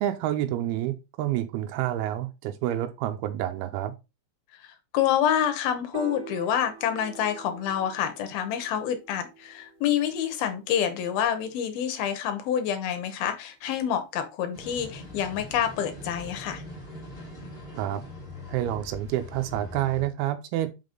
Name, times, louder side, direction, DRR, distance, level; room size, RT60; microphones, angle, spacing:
voice 1, 0.0-3.9 17.8-18.0 18.5-20.7, right 13 dB, 90° right, 2.2 m, -28 dB
voice 2, 4.9-16.6, left 9 dB, 75° left, 2.4 m, -27 dB
Piano, 5.9-12.2, right 5 dB, 55° right, 2.6 m, -46 dB
sound 1, 14.5-20.0, left 1 dB, 55° left, 0.6 m, -42 dB
5.7 x 5.3 x 3.8 m
omnidirectional pair, 5.2 m